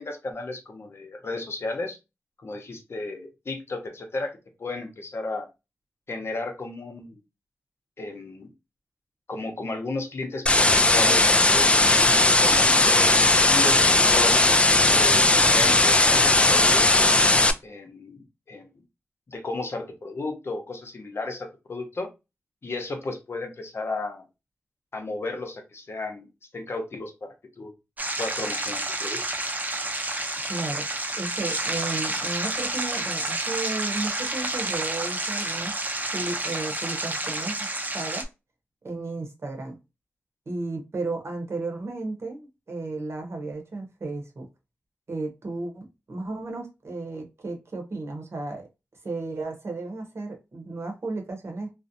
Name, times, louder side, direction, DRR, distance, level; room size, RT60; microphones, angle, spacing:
voice 1, 0.0-2.0 2.4-4.3 4.6-5.5 6.1-7.2 8.0-8.5 9.3-14.3 14.9-16.9 17.6-18.7 19.3-22.1 22.6-24.2 24.9-27.7 28.2-29.2, left 2 dB, 55° left, 0.7 m, -34 dB
sound 1, 10.5-17.5, left 2 dB, 25° left, 0.3 m, -18 dB
sound 2, 28.0-38.2, right 2 dB, 35° right, 0.6 m, -29 dB
voice 2, 30.5-30.9 31.1-38.3 38.8-39.8 40.5-44.5 45.1-48.7 49.0-51.7, right 3 dB, 60° right, 0.8 m, -34 dB
2.6 x 2.0 x 2.5 m
cardioid pair, 50°, 5 cm